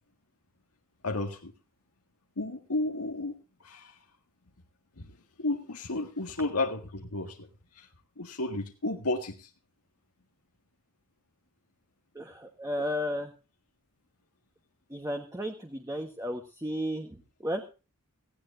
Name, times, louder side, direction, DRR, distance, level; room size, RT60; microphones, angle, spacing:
voice 1, 1.0-1.5 2.4-3.3 3.6-4.0 5.0-5.1 5.4-7.5 7.8-7.9 8.2-9.5, left 2 dB, 85° left, 3 dB, 1.8 m, -32 dB
voice 2, 12.1-13.3 14.9-17.7, equal, 15° right, 4 dB, 1.3 m, -34 dB
17.5 x 16.5 x 2.6 m, 0.33 s
head